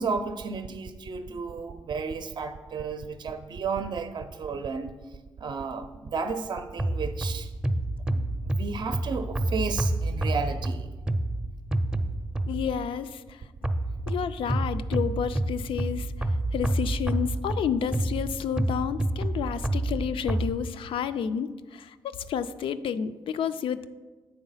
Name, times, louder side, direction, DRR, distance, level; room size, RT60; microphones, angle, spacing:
voice 1, 0.0-4.9 5.4-7.5 8.1-10.9, right 4 dB, 55° right, 8 dB, 0.5 m, -33 dB
sound 1, 6.8-12.8 13.6-20.5, right 1 dB, 10° right, 0.6 m, -29 dB
voice 2, 12.5-13.4 14.1-16.1 16.5-23.9, left 8 dB, 70° left, 12 dB, 0.4 m, -30 dB
7.9 x 3.9 x 5.6 m, 1.3 s
supercardioid pair, 60°, 9 cm